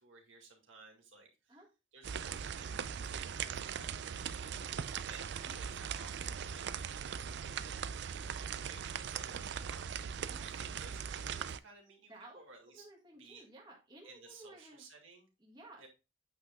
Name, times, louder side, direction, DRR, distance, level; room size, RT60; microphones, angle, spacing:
voice 1, 0.0-1.6 1.9-4.6 5.0-8.1 8.6-12.9 13.2-13.4 14.0-15.3 15.8-15.9, right 4 dB, 70° right, 1 dB, 2.0 m, -57 dB
sound 1, 2.0-11.6, right 7 dB, 55° right, 0.4 m, -40 dB
voice 2, 12.1-12.4 12.7-14.8 15.4-15.9, right 1 dB, 20° right, -2 dB, 1.7 m, -55 dB
8.6 x 5.7 x 2.3 m, 0.27 s
head